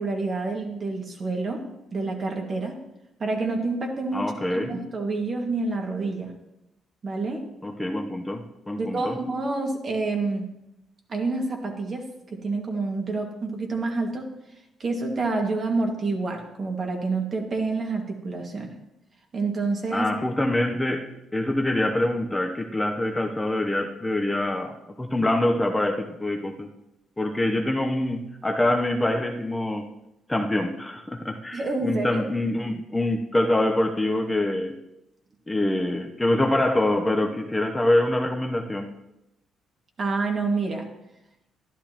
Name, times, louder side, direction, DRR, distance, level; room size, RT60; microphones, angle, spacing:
voice 1, 0.0-1.7 1.9-2.7 3.2-4.3 4.5-6.3 7.0-7.4 8.8-10.5 11.1-12.0 12.3-14.2 14.8-18.8 19.3-20.1 31.5-32.2 40.0-40.8, right 3 dB, 45° right, 2 dB, 1.9 m, -28 dB
voice 2, 4.1-4.7 7.6-9.2 19.9-26.7 27.2-29.9 30.3-34.8 35.5-38.9, left 1 dB, 15° left, 3 dB, 0.8 m, -25 dB
12.0 x 11.0 x 2.9 m, 0.88 s
cardioid pair, 90°, 0 cm